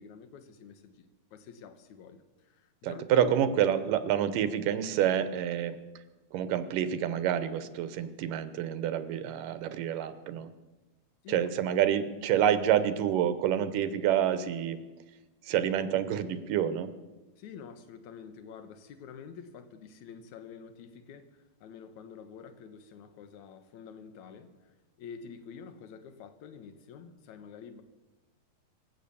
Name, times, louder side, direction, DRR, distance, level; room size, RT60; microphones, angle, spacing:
voice 1, 0.0-3.3 11.2-11.5 17.4-27.8, left 6 dB, 70° left, 9 dB, 2.4 m, -48 dB
voice 2, 2.8-5.8 6.3-10.5 11.3-14.8 15.4-16.9, right 10 dB, 85° right, 12 dB, 2.6 m, -28 dB
25.0 x 8.3 x 7.0 m, 1.1 s
omnidirectional pair, 3.7 m